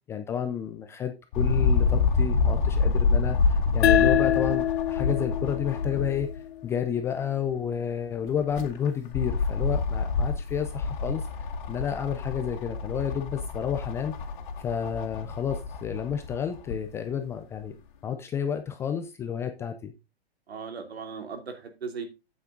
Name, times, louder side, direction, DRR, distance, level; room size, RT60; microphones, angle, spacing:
voice 1, 0.1-11.2 11.7-14.1 14.6-17.8 18.0-19.9, left 8 dB, 10° left, 7 dB, 0.4 m, -31 dB
sound 1, 1.3-6.4 6.8-6.9 8.3-16.8 17.6-17.7, left 4 dB, 50° left, 2.2 m, -27 dB
sound 2, 3.8-7.0, left 11 dB, 80° left, 0.5 m, -26 dB
voice 2, 20.5-22.0, right 5 dB, 75° right, 5 dB, 2.9 m, -37 dB
8.5 x 8.4 x 3.8 m, 0.26 s
hypercardioid pair, 130°, 31 cm